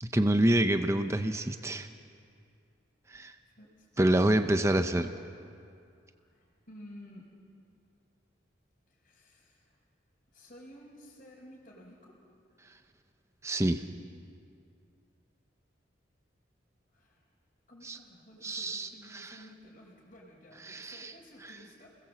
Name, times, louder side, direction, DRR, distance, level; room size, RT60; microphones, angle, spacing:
voice 1, 0.0-1.9 3.1-3.3 4.0-5.1 13.4-13.8 17.8-18.0 18.4-19.3 20.6-21.1, right 1 dB, 15° right, 8 dB, 0.7 m, -27 dB
voice 2, 3.4-4.5 6.2-7.3 8.9-9.8 10.3-12.2 16.9-17.2 17.7-22.0, equal, 40° left, -7 dB, 4.5 m, -53 dB
29.5 x 20.5 x 7.7 m, 2.4 s
head